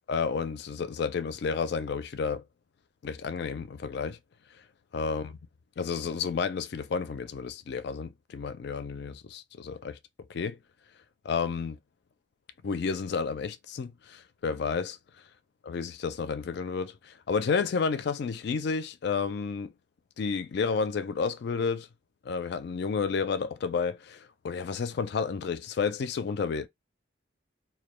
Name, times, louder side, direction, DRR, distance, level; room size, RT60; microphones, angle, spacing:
voice 1, 0.1-2.4 3.0-4.2 4.9-5.4 5.8-10.0 10.3-10.6 11.2-11.8 12.6-15.0 15.6-19.7 20.2-21.9 22.2-26.7, left 5 dB, 55° left, 0.4 m, -31 dB
2.2 x 2.2 x 3.0 m
head